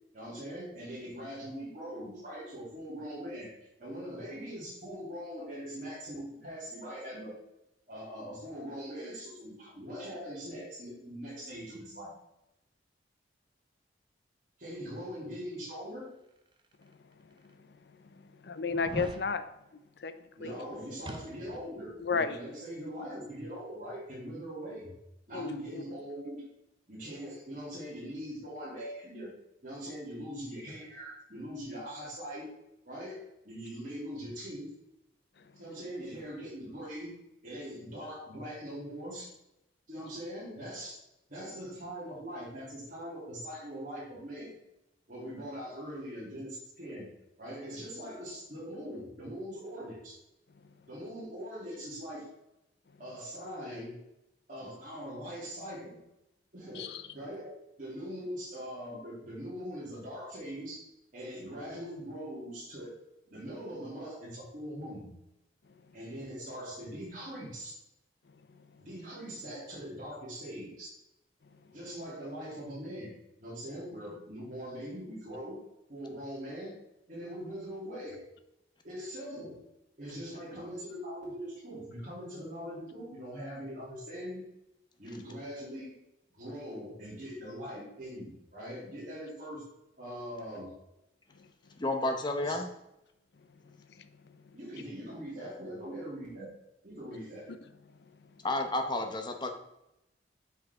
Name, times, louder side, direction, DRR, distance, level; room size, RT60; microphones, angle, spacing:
voice 1, 0.1-3.5 3.8-7.3 7.9-12.1 14.6-16.1 20.4-24.9 25.3-26.4 26.9-29.3 29.6-32.5 32.8-34.7 35.6-37.1 37.4-39.3 39.9-41.0 41.3-44.5 45.1-47.1 47.4-50.2 50.9-52.3 53.0-53.9 54.5-56.0 56.5-56.9 57.1-60.8 61.1-63.0 63.3-65.1 65.9-67.7 68.8-70.9 71.7-73.1 73.4-75.6 75.9-76.8 77.1-78.2 78.8-79.5 80.0-84.4 85.0-85.9 86.3-89.6 90.0-90.7 92.4-92.6 94.5-96.5 96.8-97.5, equal, 45° right, -7 dB, 2.8 m, -42 dB
sound 1, 16.7-16.8 17.5-17.6 18.7-19.3 21.1-21.7 22.0-22.1, right 1 dB, 25° right, 0.6 m, -40 dB
voice 2, 18.1-19.4 20.0-20.1 20.4-20.5 22.0-22.4 25.3-25.8 56.7-57.0 91.4-91.5 94.0-94.1, left 4 dB, 65° left, 11 dB, 0.5 m, -33 dB
voice 3, 91.8-92.7 98.4-99.5, left 2 dB, 25° left, 4 dB, 0.8 m, -31 dB
8.1 x 4.7 x 3.5 m, 0.88 s
head